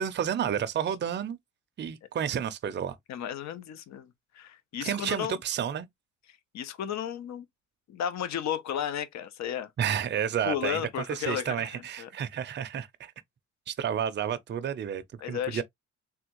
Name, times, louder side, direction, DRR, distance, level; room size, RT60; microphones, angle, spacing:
voice 1, 0.0-1.4 1.8-3.0 4.8-5.9 9.8-13.1 13.7-15.6, right 8 dB, 35° right, 0.5 m, -31 dB
voice 2, 3.1-5.3 6.5-7.5 7.9-9.7 10.4-12.1 15.2-15.6, left 9 dB, 65° left, 0.7 m, -34 dB
3.4 x 2.3 x 2.9 m
cardioid pair, 90°, 30 cm